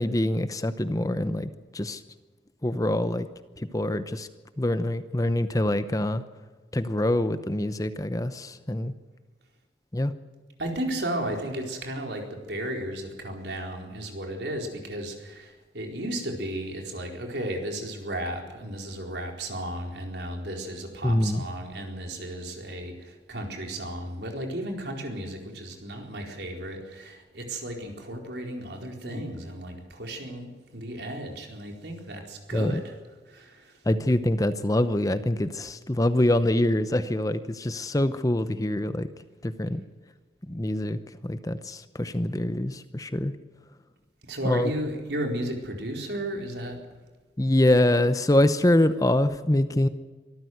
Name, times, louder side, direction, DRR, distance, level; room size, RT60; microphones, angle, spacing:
voice 1, 0.0-2.0 2.6-3.3 3.6-4.3 4.6-6.2 6.7-8.9 9.9-10.1 21.0-21.4 29.1-29.2 32.5-32.8 33.9-39.1 39.4-39.8 40.4-43.3 44.4-44.7 47.4-49.9, left 1 dB, 20° left, 12 dB, 0.8 m, -25 dB
voice 2, 10.6-32.9 33.3-33.7 44.3-46.8, right 1 dB, 65° right, 2 dB, 4.4 m, -34 dB
24.5 x 14.0 x 8.0 m, 1.4 s
head